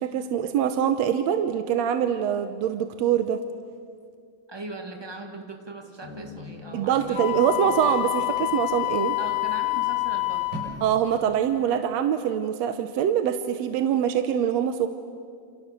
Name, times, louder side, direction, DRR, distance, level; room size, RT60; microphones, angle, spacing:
voice 1, 0.0-3.4 6.7-9.2 10.8-14.9, right 9 dB, 70° right, 8 dB, 1.8 m, -24 dB
voice 2, 4.5-7.2 9.2-10.8, right 2 dB, 10° right, 3 dB, 1.5 m, -40 dB
sound 1, 6.0-10.6, left 3 dB, 30° left, 2.3 m, -45 dB
sound 2, 6.8-11.8, right 1 dB, 90° right, 8.4 m, -44 dB
Wind instrument woodwind instrument, 7.1-10.7, left 21 dB, 75° left, 2.9 m, -27 dB
29.0 x 28.5 x 6.9 m, 2.3 s
omnidirectional pair, 3.7 m